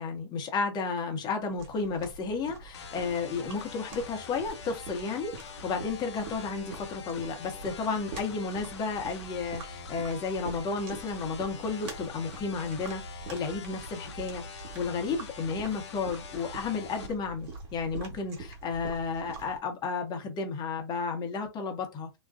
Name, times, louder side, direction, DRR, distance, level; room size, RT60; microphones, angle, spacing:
voice 1, 0.0-22.2, left 4 dB, 30° left, 0.8 m, -32 dB
sound 1, 1.6-19.6, right 4 dB, 50° right, 1.1 m, -45 dB
sound 2, 2.7-17.1, left 7 dB, 75° left, 0.6 m, -45 dB
2.4 x 2.2 x 2.4 m
hypercardioid pair, 105°, 14 cm